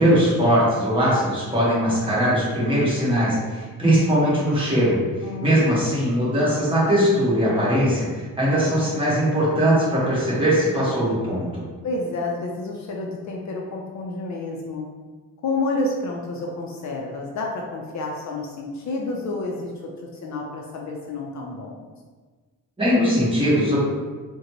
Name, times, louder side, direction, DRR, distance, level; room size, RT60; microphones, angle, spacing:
voice 1, 0.0-4.9 5.4-11.7 22.8-23.8, equal, 15° right, -8 dB, 1.2 m, -20 dB
voice 2, 5.2-5.7 11.8-14.9 15.4-21.9, left 2 dB, 55° left, -1 dB, 0.5 m, -29 dB
3.8 x 2.2 x 2.9 m, 1.4 s
cardioid pair, 135°, 34 cm